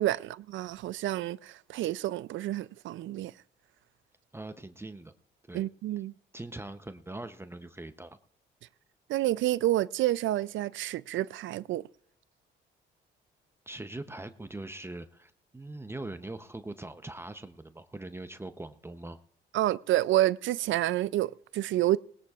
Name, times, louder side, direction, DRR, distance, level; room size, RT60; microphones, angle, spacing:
voice 1, 0.0-3.3 5.5-6.1 9.1-11.8 19.5-22.0, right 14 dB, 75° right, 0.4 m, -29 dB
voice 2, 4.3-5.1 5.5-5.6 6.3-8.2 13.7-19.2, right 2 dB, 10° right, 0.7 m, -42 dB
19.5 x 18.5 x 2.4 m
cardioid pair, 90°, 20 cm